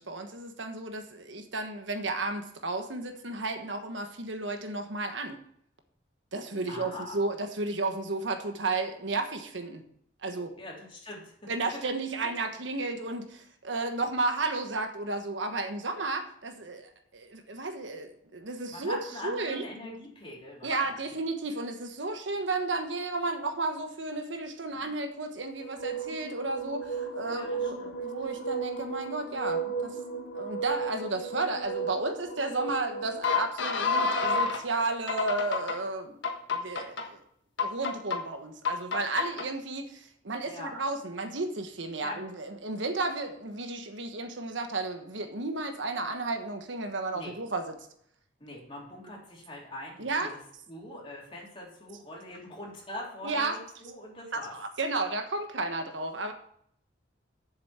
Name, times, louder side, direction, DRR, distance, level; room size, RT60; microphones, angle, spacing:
voice 1, 0.0-5.4 6.3-9.8 10.2-10.6 11.5-20.0 20.6-30.0 30.3-36.2 36.5-37.2 37.6-47.9 50.0-50.3 53.2-53.6 54.3-56.3, right 3 dB, 75° right, 6 dB, 1.3 m, -33 dB
voice 2, 6.7-7.2 10.6-11.8 18.7-21.0 24.7-24.8 27.3-28.0 40.4-40.7 42.0-42.2 47.1-47.3 48.4-50.4 50.7-54.5, left 1 dB, 30° left, -3 dB, 3.4 m, -43 dB
sound 1, 25.6-34.6 35.1-35.8 36.2-37.0 37.6-38.2 38.7-39.5, left 1 dB, 75° left, 1.5 m, -32 dB
7.3 x 7.3 x 8.0 m, 0.67 s
head